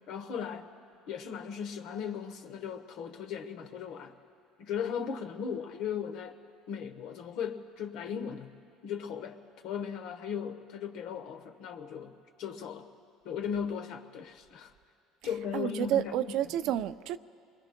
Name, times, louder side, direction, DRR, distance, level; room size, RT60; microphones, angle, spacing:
voice 1, 0.1-0.7 1.1-4.2 4.6-6.4 6.7-8.5 8.8-9.4 9.6-12.1 12.4-12.9 13.2-14.7 15.2-16.4, left 7 dB, 70° left, 6 dB, 1.0 m, -37 dB
voice 2, 15.5-17.2, right 11 dB, 70° right, 12 dB, 0.4 m, -30 dB
29.0 x 22.0 x 2.3 m, 2.4 s
supercardioid pair, 95°, 0 cm